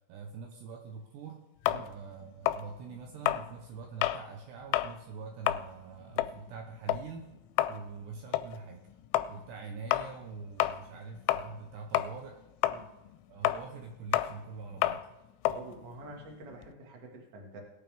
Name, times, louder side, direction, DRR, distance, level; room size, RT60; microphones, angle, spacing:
voice 1, 0.1-7.4 7.7-8.9 9.3-12.4 13.3-15.0, right 5 dB, 75° right, 3 dB, 2.7 m, -44 dB
sound 1, 1.7-4.3 4.6-5.0 5.3-11.7 11.9-16.7, left 14 dB, 85° left, 3.1 m, -31 dB
voice 2, 15.5-17.6, right 2 dB, 55° right, 1 dB, 1.7 m, -47 dB
20.0 x 8.8 x 3.5 m, 0.95 s
omnidirectional pair, 5.7 m